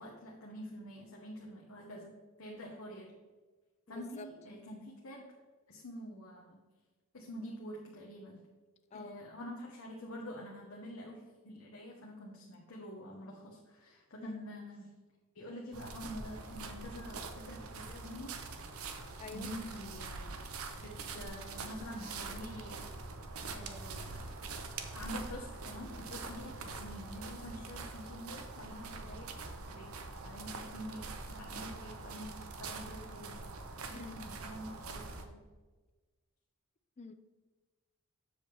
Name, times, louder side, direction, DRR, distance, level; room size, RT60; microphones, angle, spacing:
voice 1, 0.0-3.1 3.9-5.3 5.7-6.6 7.1-8.5 8.9-14.9 15.3-18.3 19.3-20.4 20.8-22.8 23.5-24.4 24.9-29.3 29.7-29.9 30.2-33.4 33.9-35.4, equal, 75° left, -1 dB, 1.1 m, -47 dB
voice 2, 3.9-4.3 8.9-9.2 14.2-14.4 19.2-19.5 33.9-34.2 37.0-37.1, left 4 dB, 30° left, 9 dB, 0.4 m, -47 dB
sound 1, 15.7-35.2, right 3 dB, 85° right, 0.8 m, -44 dB
7.6 x 6.9 x 3.3 m, 1.3 s
head